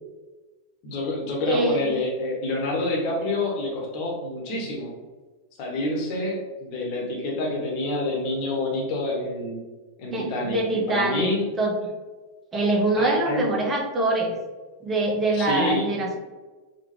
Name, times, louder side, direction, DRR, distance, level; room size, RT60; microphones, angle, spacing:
voice 1, 0.8-4.9 5.6-9.6 10.0-11.5 13.0-13.4 15.3-15.9, left 2 dB, 45° left, -1 dB, 0.9 m, -27 dB
voice 2, 1.5-2.0 10.1-11.3 11.6-11.7 12.5-14.3 14.8-16.2, right 2 dB, 20° right, 1 dB, 0.7 m, -24 dB
3.7 x 2.2 x 2.9 m, 1.3 s
figure-of-eight pair, 90°, 0 cm